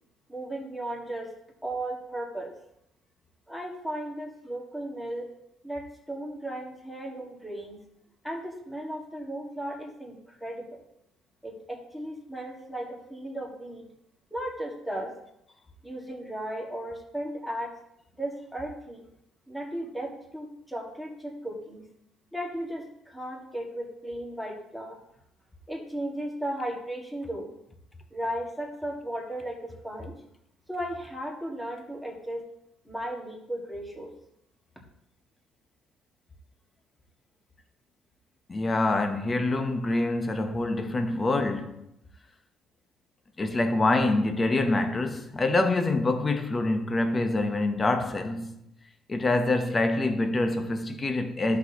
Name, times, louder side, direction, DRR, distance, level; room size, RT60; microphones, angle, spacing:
voice 1, 0.3-1.3 1.6-2.5 3.5-5.3 5.6-7.8 8.2-10.7 11.4-13.9 14.3-15.1 15.8-17.7 18.2-19.1 19.5-21.9 22.3-25.0 25.7-27.5 28.1-30.2 30.7-32.4 32.8-34.1, right 1 dB, 5° left, 1.8 m, -35 dB
voice 2, 38.5-41.9 43.4-48.5 49.1-51.6, left 2 dB, 20° left, 0.9 m, -26 dB
14.0 x 6.3 x 2.9 m
cardioid pair, 155°, 0 cm